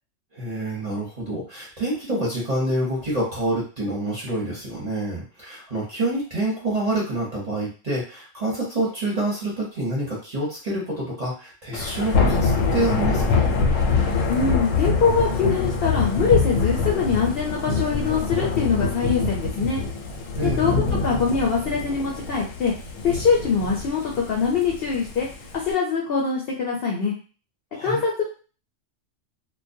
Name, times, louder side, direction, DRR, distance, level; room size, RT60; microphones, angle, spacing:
voice 1, 0.3-13.5 20.4-20.7 27.7-28.0, right 1 dB, 40° right, -5 dB, 0.7 m, -27 dB
Thunder / Rain, 11.7-25.7, left 4 dB, 90° left, 1.0 m, -24 dB
voice 2, 14.3-19.8 20.4-22.7 23.0-25.3 25.7-27.1 27.8-28.2, left 5 dB, 60° left, -2 dB, 0.6 m, -23 dB
2.2 x 2.1 x 2.6 m, 0.37 s
omnidirectional pair, 1.3 m